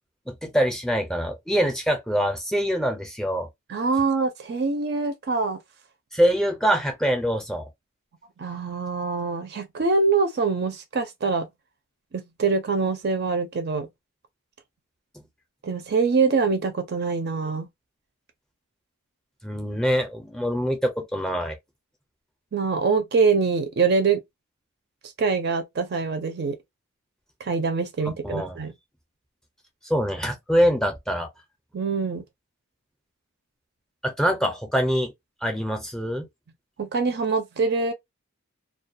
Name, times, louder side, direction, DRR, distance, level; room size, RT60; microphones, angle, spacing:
voice 1, 0.3-3.5 6.1-7.7 19.4-21.6 28.0-28.6 29.8-31.3 34.0-35.1 35.4-36.3, equal, ahead, 0.5 m, -24 dB
voice 2, 3.7-5.6 8.4-11.5 12.1-13.9 15.6-17.7 22.5-24.2 25.2-26.6 27.4-28.7 31.7-32.2 36.8-37.9, right 4 dB, 50° right, 0.4 m, -24 dB
2.3 x 2.2 x 2.6 m
head